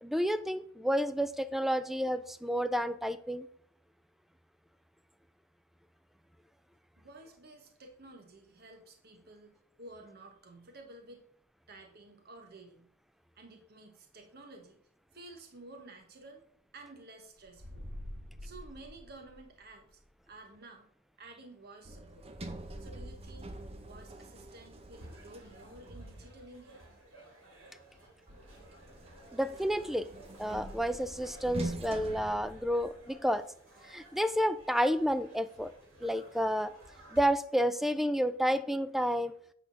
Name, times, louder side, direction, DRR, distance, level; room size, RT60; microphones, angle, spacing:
voice 1, 0.0-3.5 29.3-30.1 30.4-33.4 33.9-35.7 36.0-36.7 37.1-39.3, equal, ahead, 13 dB, 0.3 m, -30 dB
voice 2, 7.0-11.2 11.7-12.9 13.3-14.8 15.1-16.4 16.7-17.8 18.4-20.0 20.3-20.9 21.2-22.3 22.8-23.5 23.8-26.8, right 2 dB, 50° right, 3 dB, 1.1 m, -52 dB
sound 1, 17.4-19.9, equal, 90° right, 3.0 m, -46 dB
Sliding door, 21.8-26.7 28.3-33.2, right 1 dB, 30° right, 0.8 m, -44 dB
sound 2, 24.9-37.2, right 1 dB, 70° right, 2.6 m, -56 dB
8.4 x 3.8 x 5.8 m, 0.63 s
head